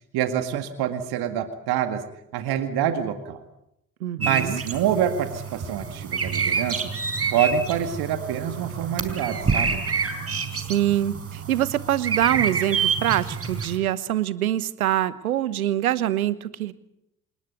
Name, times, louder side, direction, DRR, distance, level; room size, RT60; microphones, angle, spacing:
voice 1, 0.1-2.0 2.3-3.4 4.2-6.9 7.3-9.8, right 9 dB, 60° right, 9 dB, 2.1 m, -26 dB
voice 2, 4.0-4.6 10.7-16.7, right 12 dB, 80° right, 17 dB, 1.1 m, -24 dB
sound 1, 4.2-13.8, right 5 dB, 35° right, 4.4 m, -28 dB
28.0 x 19.5 x 8.1 m, 0.80 s
figure-of-eight pair, 50°, 42 cm